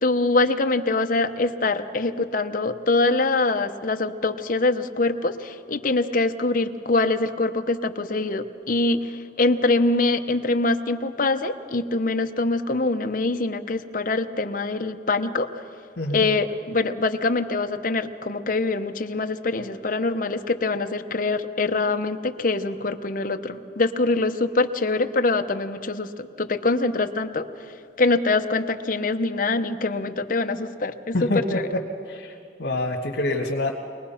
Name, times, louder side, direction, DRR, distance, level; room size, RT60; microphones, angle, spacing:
voice 1, 0.0-15.6 16.1-27.5 28.0-31.7, left 3 dB, 50° left, 7 dB, 0.9 m, -24 dB
voice 2, 31.1-31.6 32.1-32.3 32.6-33.7, left 2 dB, 75° left, -2 dB, 1.6 m, -25 dB
24.0 x 19.5 x 5.7 m, 2.4 s
head